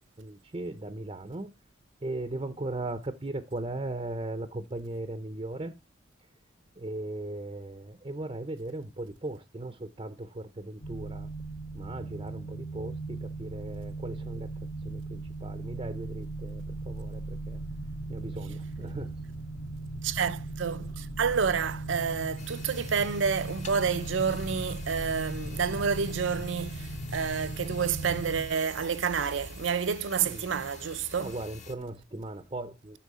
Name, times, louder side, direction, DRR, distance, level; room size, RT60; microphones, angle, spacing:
voice 1, 0.2-1.5 2.0-5.7 6.8-11.3 11.7-14.5 14.8-17.6 18.1-19.2 30.2-30.5 31.2-33.0, right 2 dB, 30° right, 0.6 m, -38 dB
sound 1, 10.8-28.5, right 2 dB, 65° left, 1.4 m, -38 dB
voice 2, 20.0-31.3, right 6 dB, 70° right, 0.6 m, -29 dB
sound 2, 22.4-31.7, left 4 dB, 35° left, 0.7 m, -48 dB
8.4 x 5.8 x 4.0 m
head